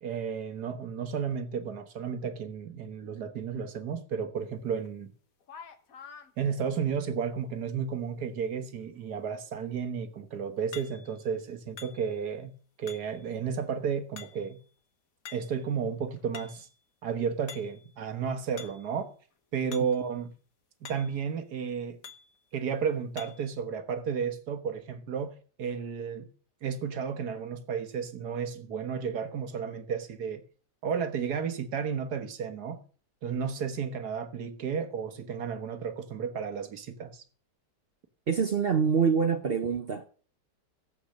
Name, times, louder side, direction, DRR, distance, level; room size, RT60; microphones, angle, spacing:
voice 1, 0.0-5.1 6.4-12.5 12.8-14.6 15.3-16.7 17.0-19.1 19.5-20.3 20.8-22.0 22.5-26.3 26.6-30.4 30.8-32.8 33.2-37.2, right 6 dB, 70° right, 1.7 m, -33 dB
sound 1, 4.8-4.9 5.4-6.3 10.7-11.3 11.8-12.3 12.9-13.3 14.2-14.6 15.3-15.7 16.1-16.7 17.5-17.9 18.6-18.9 19.7-20.0 20.3-20.4 20.9-21.3 22.0-22.4 23.2-23.5, left 7 dB, 55° left, 1.5 m, -47 dB
voice 2, 38.3-40.1, right 6 dB, 50° right, 0.7 m, -25 dB
14.5 x 8.0 x 6.5 m
omnidirectional pair, 1.8 m